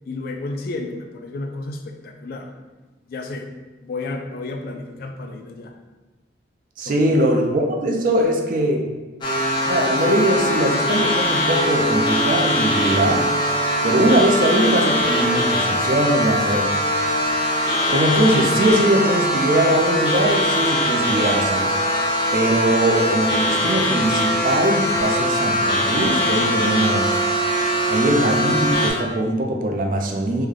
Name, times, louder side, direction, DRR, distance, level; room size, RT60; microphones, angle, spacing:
voice 1, 0.1-2.5 3.1-3.5 3.8-5.7 6.9-7.3, left 2 dB, 50° left, 4 dB, 0.3 m, -32 dB
voice 2, 6.8-8.8 9.6-13.3 13.8-16.7 17.9-21.8 22.3-27.3 27.9-30.5, right 1 dB, 45° right, 2 dB, 0.4 m, -21 dB
sound 1, 9.2-28.9, equal, 25° left, 0.7 m, -21 dB
3.2 x 2.1 x 3.6 m, 1.2 s
head